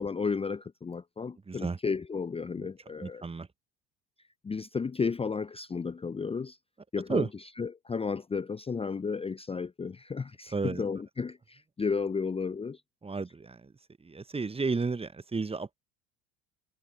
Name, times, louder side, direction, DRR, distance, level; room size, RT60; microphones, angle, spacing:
voice 1, 0.0-3.3 4.4-6.6 6.9-12.8, left 5 dB, 15° left, 0.8 m, -33 dB
voice 2, 1.5-1.8 3.0-3.5 7.1-7.3 10.5-10.8 13.0-13.6 14.0-15.8, right 4 dB, 15° right, 1.3 m, -32 dB
figure-of-eight pair, 65°, 42 cm